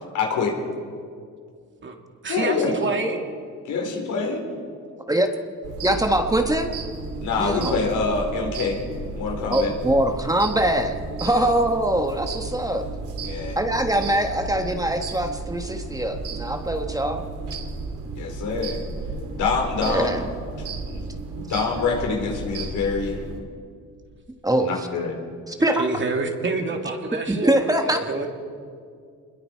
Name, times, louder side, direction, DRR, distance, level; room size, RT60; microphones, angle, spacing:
voice 1, 0.1-0.6 2.3-2.7 3.6-4.4 7.2-8.8 9.2-9.7 11.2-11.5 13.2-13.6 18.2-18.8 19.3-20.1 20.9-21.0 21.3-23.2 24.6-25.1, left 4 dB, 80° left, 1 dB, 4.4 m, -25 dB
voice 2, 2.2-3.2 25.8-28.3, right 3 dB, 40° right, 3 dB, 2.7 m, -27 dB
sound 1, 5.6-23.4, right 3 dB, 85° right, 2.7 m, -33 dB
voice 3, 5.8-6.7 7.4-7.7 9.5-12.8 13.6-17.2 19.9-20.2 24.4-24.7 25.5-25.8 27.3-28.0, right 1 dB, 10° right, 5 dB, 1.4 m, -23 dB
27.0 x 21.5 x 4.6 m, 2.2 s
cardioid pair, 90°, 30 cm